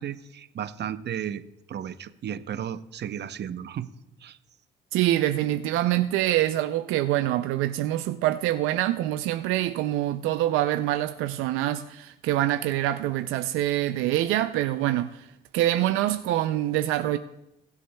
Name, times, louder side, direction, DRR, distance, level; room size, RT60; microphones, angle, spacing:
voice 1, 0.0-1.4 1.7-3.9 4.2-4.4, right 9 dB, 55° right, 12 dB, 0.7 m, -34 dB
voice 2, 4.9-15.2 15.5-17.2, right 14 dB, 90° right, 9 dB, 0.4 m, -25 dB
21.0 x 8.3 x 2.2 m, 0.89 s
supercardioid pair, 60°, 21 cm